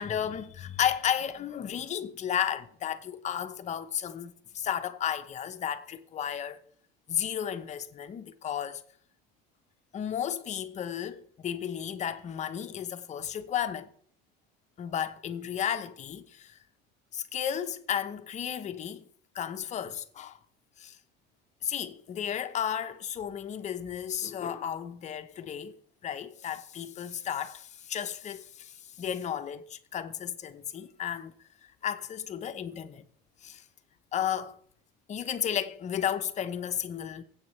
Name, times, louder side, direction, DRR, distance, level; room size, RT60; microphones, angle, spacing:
voice 1, 0.0-6.6 7.1-8.8 9.9-13.9 14.8-16.6 17.1-19.0 19.3-20.4 20.8-21.0 21.6-25.8 26.0-31.3 31.8-33.0 33.4-33.6 34.1-34.6 35.1-37.2, left 9 dB, 35° left, 0.9 m, -33 dB
24.0 x 8.2 x 3.2 m
cardioid pair, 140°, 21 cm